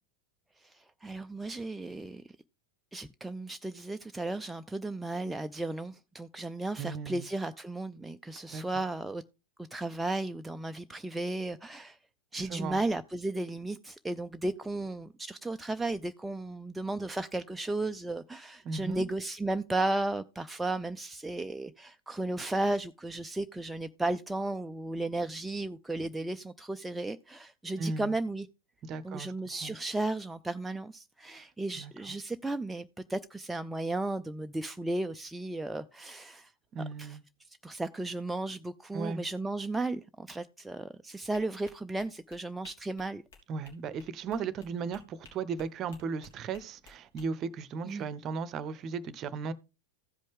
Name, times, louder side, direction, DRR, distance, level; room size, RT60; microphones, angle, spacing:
voice 1, 0.6-2.2 2.9-9.2 9.7-12.0 12.3-28.5 29.0-36.5 37.0-37.2 37.6-43.2 47.9-48.1, right 2 dB, 5° right, 0.4 m, -34 dB
voice 2, 6.8-7.3 8.5-8.6 12.5-12.8 18.6-19.1 27.8-28.1 28.8-29.3 29.6-29.8 31.4-31.5 31.8-32.1 36.7-37.2 38.9-39.2 43.5-49.5, right 5 dB, 30° right, 0.8 m, -36 dB
sound 1, 41.3-47.3, left 4 dB, 60° left, 3.4 m, -58 dB
15.0 x 5.2 x 3.6 m
figure-of-eight pair, 90°, 0 cm